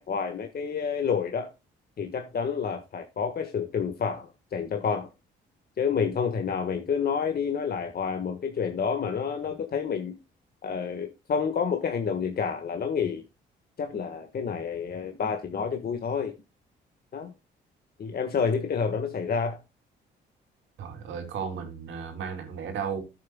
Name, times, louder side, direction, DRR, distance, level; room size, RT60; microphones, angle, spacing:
voice 1, 0.0-1.5 2.0-5.1 5.8-10.1 10.6-13.2 13.8-16.3 17.1-17.3 18.0-19.6, left 6 dB, 50° left, 1.7 m, -29 dB
voice 2, 20.8-23.0, right 6 dB, 75° right, 3.1 m, -34 dB
13.0 x 7.7 x 2.3 m
supercardioid pair, 70°, 20 cm